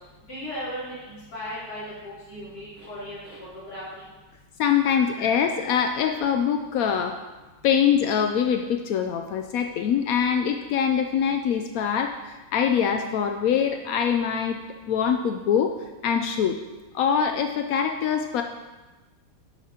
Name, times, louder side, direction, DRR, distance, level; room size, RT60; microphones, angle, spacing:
voice 1, 0.3-1.8 2.3-3.4 3.7-4.0, equal, 60° left, -11 dB, 4.0 m, -36 dB
voice 2, 4.6-7.2 7.6-14.6 14.9-15.7 16.0-16.6 16.9-18.4, left 7 dB, 80° left, 5 dB, 0.7 m, -23 dB
11.0 x 9.3 x 2.8 m, 1.2 s
omnidirectional pair, 2.0 m